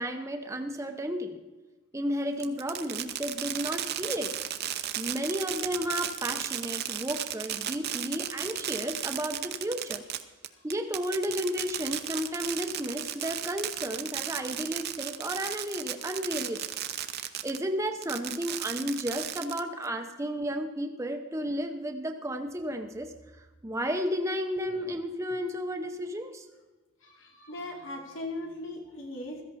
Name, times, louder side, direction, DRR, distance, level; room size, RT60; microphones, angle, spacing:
voice 1, 0.0-1.4 1.9-4.3 5.0-10.0 10.6-16.7 17.4-23.1 23.6-26.5, equal, 15° right, 4 dB, 0.7 m, -33 dB
Fireworks, 2.4-17.6 18.0-19.9, right 11 dB, 50° right, 0.7 m, -34 dB
voice 2, 27.0-29.4, left 1 dB, 70° left, 1 dB, 2.6 m, -39 dB
16.0 x 14.0 x 4.1 m, 1.2 s
head